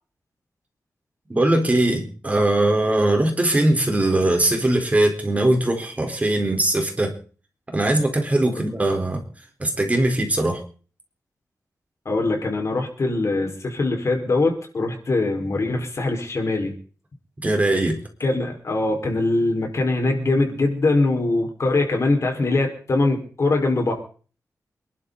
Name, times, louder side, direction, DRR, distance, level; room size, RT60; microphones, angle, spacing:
voice 1, 1.3-7.2 7.7-9.2 9.6-10.6 17.4-18.0, right 1 dB, 25° right, 3 dB, 4.5 m, -20 dB
voice 2, 12.1-16.8 18.2-23.9, left 2 dB, 50° left, 2 dB, 5.2 m, -22 dB
28.0 x 12.0 x 4.2 m, 0.41 s
wide cardioid pair, 120°, 6 cm